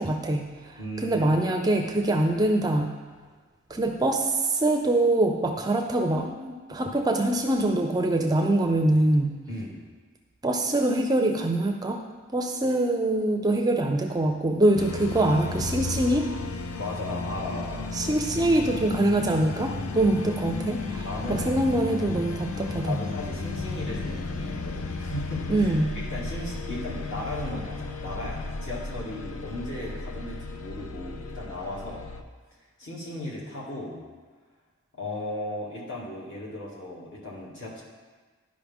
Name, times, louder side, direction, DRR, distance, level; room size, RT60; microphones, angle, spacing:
voice 1, 0.0-2.9 3.7-9.3 10.4-12.0 12.3-16.3 17.9-23.0 25.5-26.0, right 1 dB, 20° right, 4 dB, 0.4 m, -24 dB
voice 2, 0.8-1.4 9.5-9.8 16.8-17.9 21.0-21.6 22.6-32.1 32.8-34.0 34.9-37.8, left 1 dB, 55° left, -5 dB, 2.1 m, -36 dB
sound 1, 14.8-32.2, left 3 dB, 85° left, 0.6 m, -34 dB
11.5 x 5.2 x 3.6 m, 1.4 s
head